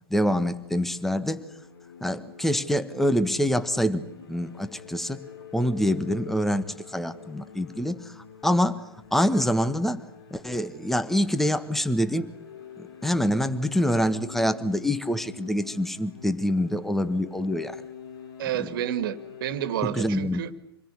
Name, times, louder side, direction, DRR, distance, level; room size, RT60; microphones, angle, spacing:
voice 1, 0.1-1.4 2.0-5.2 5.5-8.8 9.1-10.0 10.3-12.3 13.0-17.8 18.6-18.7 19.8-20.5, equal, ahead, 13 dB, 1.5 m, -26 dB
sound 1, 0.6-19.8, left 7 dB, 65° left, 4.0 m, -46 dB
voice 2, 18.4-20.5, right 11 dB, 60° right, 13 dB, 2.2 m, -30 dB
27.0 x 21.5 x 9.8 m, 0.78 s
hypercardioid pair, 105°, 13 cm